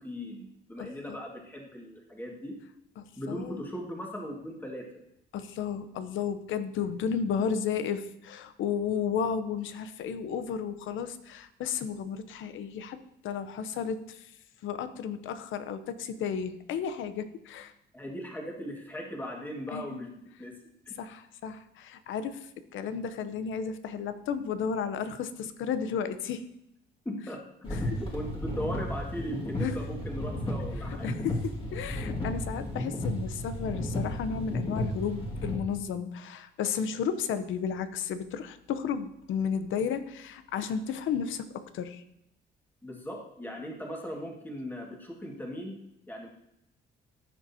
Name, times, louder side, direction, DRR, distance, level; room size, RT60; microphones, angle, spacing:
voice 1, 0.0-2.6 3.2-5.0 17.9-20.1 20.4-20.5 20.8-21.0 27.0-27.4 27.8-31.1 42.8-45.8 46.1-46.3, equal, 10° left, -1 dB, 1.8 m, -38 dB
voice 2, 0.8-1.2 3.0-3.6 5.3-13.0 13.2-14.3 14.6-17.7 19.7-20.0 21.0-26.4 27.7-27.8 29.6-29.8 31.0-42.0, left 7 dB, 80° left, 11 dB, 0.7 m, -33 dB
sound 1, 27.6-35.6, left 1 dB, 30° left, 2.0 m, -33 dB
14.5 x 6.1 x 2.8 m, 0.80 s
cardioid pair, 90°, 20 cm